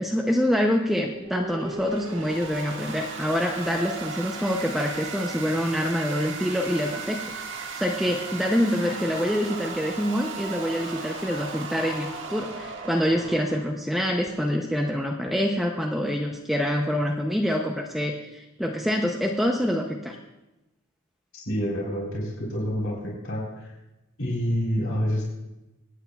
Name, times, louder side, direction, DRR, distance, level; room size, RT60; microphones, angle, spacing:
voice 1, 0.0-20.2, equal, ahead, 1 dB, 0.5 m, -26 dB
sound 1, 1.0-13.6, right 4 dB, 55° right, 1.5 m, -36 dB
voice 2, 21.5-23.7 24.2-25.2, equal, 65° left, -5 dB, 4.0 m, -28 dB
25.5 x 9.4 x 2.3 m, 1.0 s
head